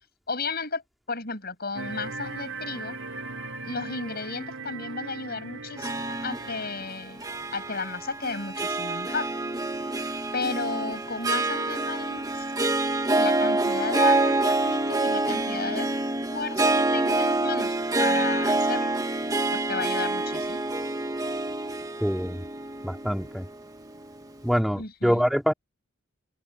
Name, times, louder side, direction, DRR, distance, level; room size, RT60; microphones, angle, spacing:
voice 1, 0.3-0.8 1.1-3.0 3.6-9.3 10.3-12.4 13.1-15.9 16.3-18.9 19.5-20.6 24.8-25.2, left 4 dB, 50° left, 6.8 m, -33 dB
sound 1, 1.7-6.8, right 3 dB, 70° right, 4.8 m, -38 dB
Harp, 5.8-24.2, right 2 dB, 20° right, 1.4 m, -27 dB
voice 2, 22.0-22.5 22.8-23.5 24.4-25.5, equal, ahead, 3.3 m, -25 dB
head